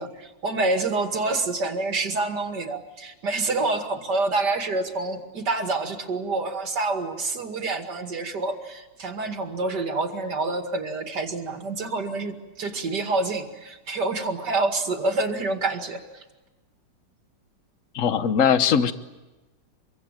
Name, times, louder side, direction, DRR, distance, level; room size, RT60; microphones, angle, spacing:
voice 1, 0.0-16.2, right 3 dB, 65° right, 5 dB, 2.7 m, -27 dB
voice 2, 17.9-18.9, left 7 dB, 50° left, 12 dB, 1.4 m, -20 dB
26.5 x 23.5 x 9.0 m, 1.1 s
omnidirectional pair, 2.0 m